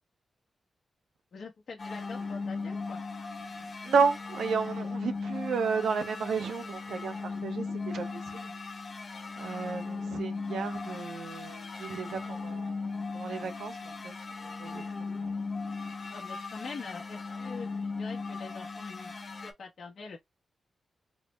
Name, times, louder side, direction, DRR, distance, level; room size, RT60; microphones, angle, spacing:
voice 1, 1.3-3.0 16.1-17.7 18.0-19.1 19.4-20.2, left 4 dB, 55° left, 1.0 m, -44 dB
sound 1, 1.8-19.5, left 4 dB, 40° left, 0.6 m, -37 dB
voice 2, 3.8-8.5 9.4-14.1 14.4-14.8 15.2-15.3, right 5 dB, 80° right, 0.7 m, -32 dB
4.1 x 2.1 x 3.1 m
wide cardioid pair, 135°, 0 cm